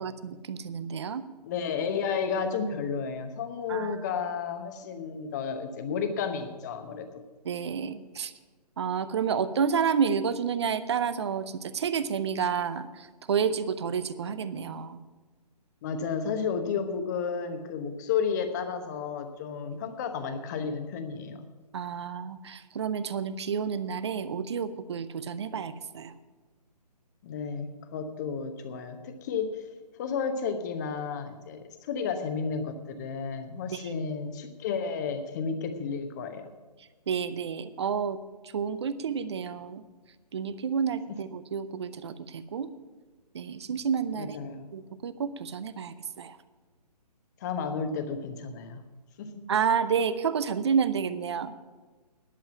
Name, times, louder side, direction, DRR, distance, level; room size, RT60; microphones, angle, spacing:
voice 1, 0.0-1.3 3.7-4.0 7.4-8.3 8.8-15.0 19.7-19.8 21.7-26.1 33.7-34.0 37.1-38.2 38.5-39.8 40.3-42.7 43.3-46.4 49.5-51.5, right 7 dB, 40° right, 14 dB, 0.7 m, -30 dB
voice 2, 1.4-7.2 15.8-21.4 27.2-29.6 30.0-36.5 44.1-44.7 47.4-48.8 49.2-49.3, left 6 dB, 25° left, 8 dB, 1.0 m, -32 dB
11.0 x 7.3 x 8.7 m, 1.3 s
figure-of-eight pair, 140°, 21 cm